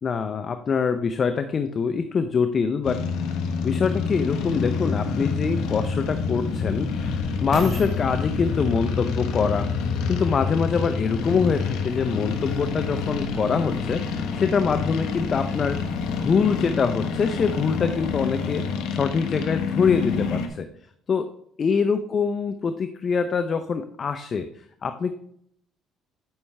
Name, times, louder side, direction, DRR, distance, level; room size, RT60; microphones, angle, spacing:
voice 1, 0.0-3.0 3.6-6.9 7.4-9.7 10.1-20.7 21.1-21.2 21.6-24.5 24.8-25.1, left 5 dB, 45° left, 9 dB, 0.6 m, -24 dB
sound 1, 2.8-20.5, left 5 dB, 75° left, 1.2 m, -27 dB
sound 2, 4.5-4.6 5.3-10.6 11.3-11.4, right 2 dB, 50° right, 3.1 m, -40 dB
8.8 x 6.2 x 3.4 m, 0.68 s
hypercardioid pair, 60°, 0 cm